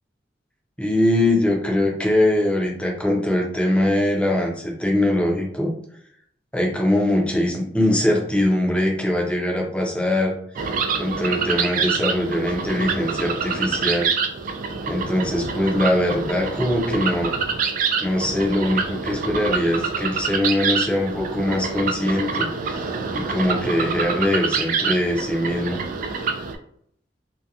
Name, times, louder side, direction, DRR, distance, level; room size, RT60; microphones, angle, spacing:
voice 1, 0.8-5.7 6.5-10.3 11.0-14.1 14.9-17.3 18.0-25.8, left 1 dB, 5° left, -1 dB, 0.6 m, -22 dB
sound 1, 10.6-26.6, right 5 dB, 50° right, 0.3 m, -26 dB
2.7 x 2.2 x 2.4 m, 0.67 s
head